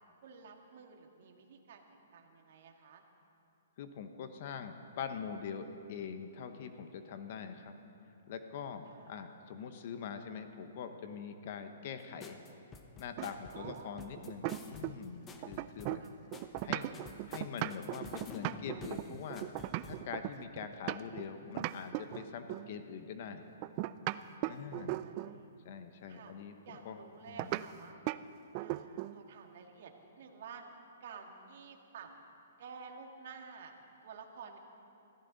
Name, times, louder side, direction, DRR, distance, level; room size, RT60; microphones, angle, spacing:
voice 1, 0.2-1.9 2.1-3.0 8.9-9.1 13.5-14.0 16.0-16.2 24.5-25.5 26.1-26.3 26.6-28.1 28.6-30.6 31.0-32.1 32.6-33.7 34.0-34.6, right 6 dB, 55° right, 3 dB, 1.8 m, -51 dB
voice 2, 3.8-7.8 8.3-12.4 13.0-16.0 16.6-16.9 17.3-19.5 19.8-23.4 24.5-25.0 25.6-26.6 26.8-27.0 27.3-27.6, left 7 dB, 45° left, 8 dB, 1.0 m, -43 dB
sound 1, 12.2-20.0, left 4 dB, 15° left, 0.8 m, -51 dB
sound 2, 13.2-15.1 15.4-21.2 21.6-22.7 23.6-25.4 27.4-27.7 28.1-28.2 28.5-29.2, right 17 dB, 30° right, 0.3 m, -38 dB
21.0 x 14.5 x 4.1 m, 2.7 s
hypercardioid pair, 155°, 0 cm